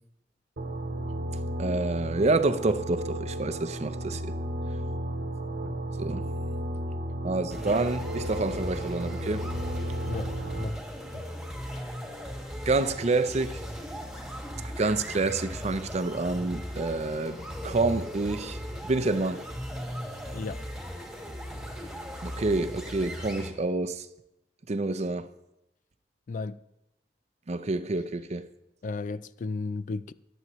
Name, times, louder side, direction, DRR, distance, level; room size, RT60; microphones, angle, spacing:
sound 1, 0.6-10.7, right 1 dB, 65° right, 1.1 m, -33 dB
voice 1, 1.6-4.3 6.0-6.2 7.2-9.5 12.7-13.6 14.8-18.6 18.8-19.4 22.2-24.1 24.7-25.3 27.5-28.5, right 3 dB, 40° right, 0.6 m, -28 dB
sound 2, 7.5-23.5, equal, 5° right, 1.9 m, -38 dB
voice 2, 28.8-30.1, left 3 dB, 45° left, 0.3 m, -34 dB
22.0 x 8.0 x 3.1 m
head